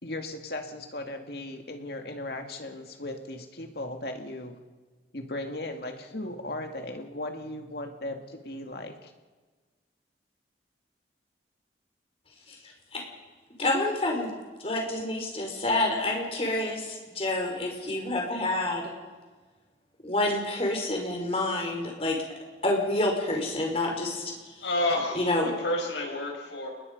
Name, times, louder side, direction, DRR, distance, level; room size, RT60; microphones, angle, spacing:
voice 1, 0.0-4.6 5.1-9.1, left 1 dB, 60° left, 4 dB, 2.3 m, -37 dB
voice 2, 13.6-14.3 14.6-18.8 20.0-22.2 22.6-24.3 25.1-25.5, left 2 dB, 30° left, 1 dB, 5.0 m, -28 dB
voice 3, 24.6-26.7, left 1 dB, 90° left, 1 dB, 6.6 m, -29 dB
30.0 x 20.5 x 5.4 m, 1.4 s
head